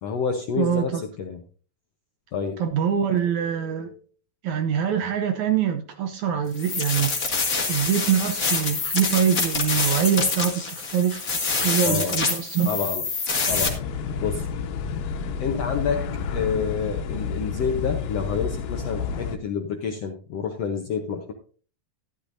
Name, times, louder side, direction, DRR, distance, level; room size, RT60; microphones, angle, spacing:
voice 1, 0.0-1.4 2.3-2.6 3.4-4.0 11.8-12.2 12.6-13.1 13.5-13.8 14.2-14.5 15.4-16.0 16.3-21.3, left 6 dB, 70° left, 1.5 m, -28 dB
voice 2, 0.6-1.0 2.6-3.9 4.4-7.1 7.7-12.7, right 8 dB, 70° right, 1.9 m, -24 dB
sound 1, 6.5-13.7, left 4 dB, 30° left, 1.8 m, -26 dB
sound 2, 13.5-19.4, left 5 dB, 90° left, 2.9 m, -30 dB
13.5 x 12.0 x 2.7 m
omnidirectional pair, 4.1 m